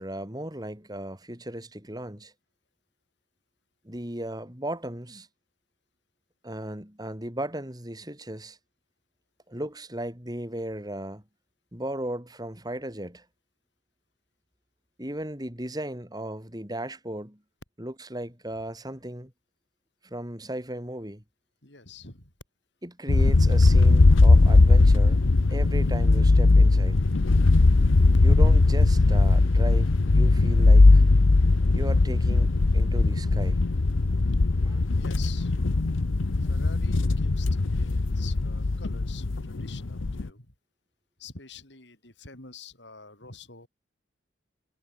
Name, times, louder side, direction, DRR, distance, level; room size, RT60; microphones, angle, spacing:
voice 1, 0.0-2.3 3.8-5.3 6.4-8.6 9.5-11.2 11.7-13.3 15.0-17.4 17.8-19.3 20.0-21.2 22.8-25.2 25.5-27.0 28.2-31.0 31.7-33.7 34.6-34.8, right 1 dB, 20° right, 4.3 m, -36 dB
voice 2, 21.6-22.3 34.9-35.7 36.4-40.5 41.2-43.7, left 5 dB, 60° left, 5.6 m, -47 dB
sound 1, 23.1-40.3, left 3 dB, 85° left, 0.8 m, -19 dB
head